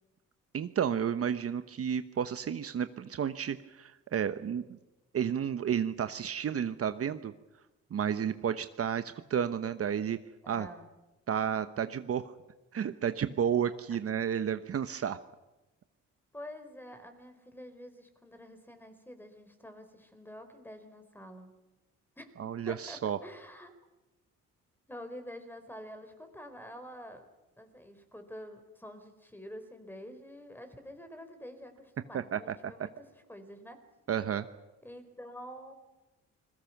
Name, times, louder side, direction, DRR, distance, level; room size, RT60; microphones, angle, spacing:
voice 1, 0.5-4.8 5.1-7.3 7.9-10.2 10.5-10.7 11.3-12.3 12.7-15.2 22.4-23.2 32.1-32.5 34.1-34.5, right 8 dB, 50° right, 10 dB, 1.1 m, -31 dB
voice 2, 10.4-10.9 16.3-21.5 22.2-22.3 22.7-23.7 24.9-27.2 27.6-33.8 34.8-35.7, equal, 5° left, 8 dB, 4.5 m, -47 dB
30.0 x 21.5 x 6.1 m, 1.1 s
cardioid pair, 90°, 30 cm